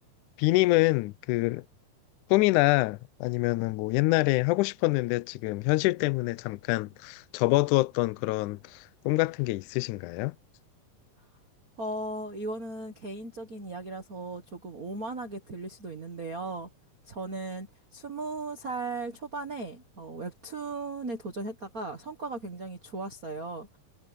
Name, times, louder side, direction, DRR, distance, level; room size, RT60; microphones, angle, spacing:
voice 1, 0.4-1.6 2.3-10.4, left 21 dB, 80° left, 1.8 m, -26 dB
voice 2, 11.8-16.7 17.0-23.7, right 3 dB, 55° right, 0.9 m, -37 dB
omnidirectional pair, 4.1 m